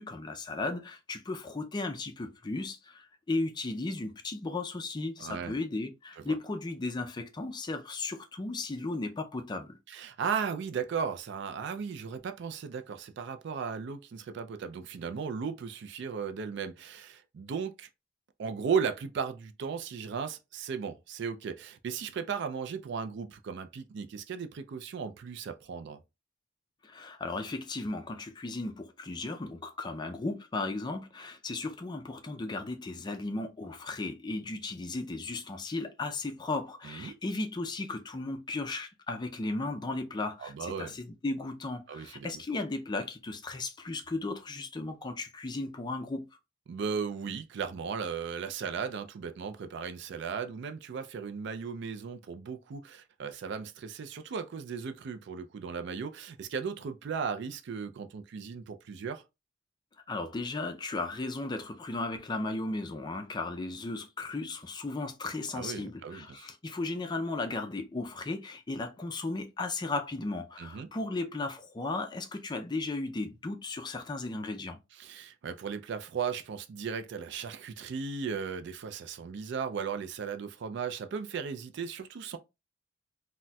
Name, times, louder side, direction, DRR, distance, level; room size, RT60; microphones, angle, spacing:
voice 1, 0.0-9.8 26.8-46.3 60.1-74.8, left 2 dB, 20° left, 0.4 m, -35 dB
voice 2, 5.2-5.5 6.3-6.4 9.9-17.9 18.4-26.0 36.8-37.2 40.4-40.9 41.9-42.4 46.7-59.2 65.5-66.5 70.6-70.9 75.0-82.4, right 6 dB, 60° right, 0.4 m, -36 dB
4.0 x 2.1 x 2.2 m
head